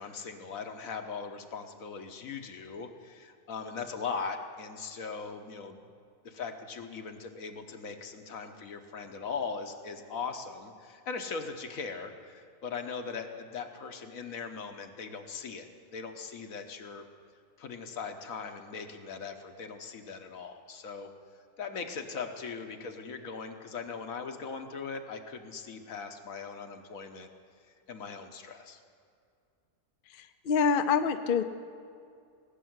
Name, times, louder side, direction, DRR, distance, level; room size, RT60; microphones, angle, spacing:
voice 1, 0.0-5.8 6.2-17.1 17.6-21.1 21.6-27.3 27.9-28.8, left 5 dB, 70° left, 6 dB, 1.4 m, -40 dB
voice 2, 30.2-31.4, left 6 dB, 50° left, 8 dB, 0.7 m, -26 dB
19.0 x 6.9 x 9.4 m, 2.3 s
omnidirectional pair, 1.6 m